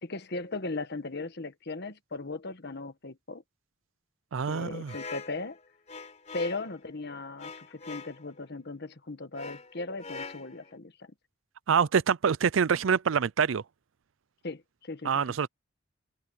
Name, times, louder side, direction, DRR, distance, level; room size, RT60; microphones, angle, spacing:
voice 1, 0.0-3.4 4.5-5.6 6.3-10.9 14.4-15.2, left 3 dB, 60° left, 1.5 m, -37 dB
voice 2, 4.3-4.9 11.7-13.6 15.0-15.5, right 6 dB, 85° right, 0.5 m, -25 dB
sound 1, 4.9-6.8 7.4-8.2 9.4-10.8, left 4 dB, 35° left, 4.3 m, -43 dB
open air
head